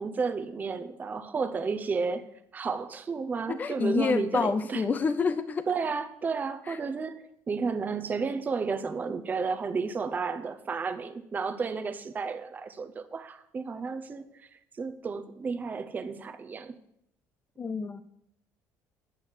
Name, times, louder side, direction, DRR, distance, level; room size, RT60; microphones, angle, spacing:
voice 1, 0.0-2.3 2.5-4.8 5.7-14.5 14.8-16.8, right 5 dB, 25° right, 0.7 m, -32 dB
voice 2, 3.5-5.7 6.7-6.8 17.6-18.0, left 5 dB, 25° left, 0.5 m, -28 dB
8.8 x 6.2 x 7.3 m
cardioid pair, 130°, 7 cm